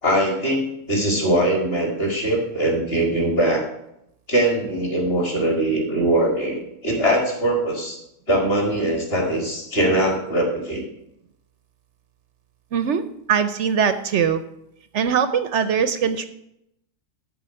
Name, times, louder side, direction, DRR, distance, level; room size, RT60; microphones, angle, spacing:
voice 1, 0.0-3.7 4.3-8.0 8.3-10.8, right 1 dB, 40° left, 1 dB, 2.5 m, -21 dB
voice 2, 12.7-14.4 14.9-16.3, right 7 dB, 65° right, 11 dB, 0.8 m, -21 dB
12.0 x 4.1 x 7.7 m, 0.80 s
omnidirectional pair, 1.6 m